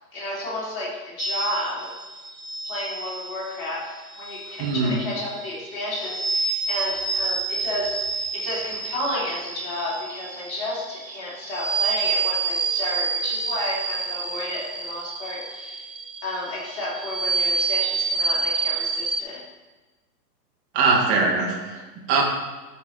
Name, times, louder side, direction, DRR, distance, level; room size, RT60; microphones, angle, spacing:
voice 1, 0.1-1.9 2.6-15.9 16.2-19.4, left 1 dB, 35° left, -5 dB, 3.0 m, -32 dB
sound 1, 1.2-19.2, right 4 dB, 85° right, 1.2 m, -28 dB
voice 2, 4.6-5.0 20.7-22.2, right 4 dB, 25° right, -1 dB, 1.8 m, -22 dB
12.5 x 4.7 x 4.3 m, 1.2 s
figure-of-eight pair, 115°, 50 cm